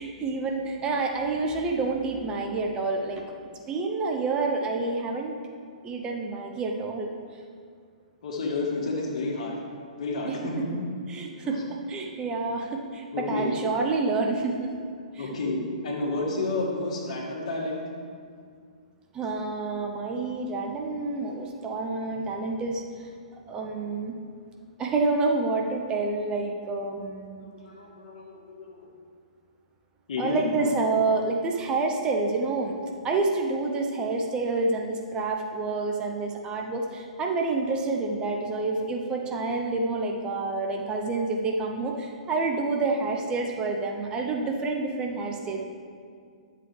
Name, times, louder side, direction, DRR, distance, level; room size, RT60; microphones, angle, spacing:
voice 1, 0.0-5.4 5.8-7.1 10.3-10.7 11.1-14.9 15.1-15.3 19.1-23.1 23.5-24.1 24.8-27.5 30.2-32.7 33.0-45.7, right 3 dB, 20° right, 2 dB, 0.8 m, -28 dB
voice 2, 8.2-9.6 10.0-10.7 11.4-11.6 13.1-13.5 15.2-17.8 27.4-28.8 30.1-30.7 32.8-32.9, left 2 dB, 60° left, -1 dB, 2.0 m, -30 dB
10.5 x 7.6 x 3.3 m, 2.2 s
figure-of-eight pair, 120°, 4 cm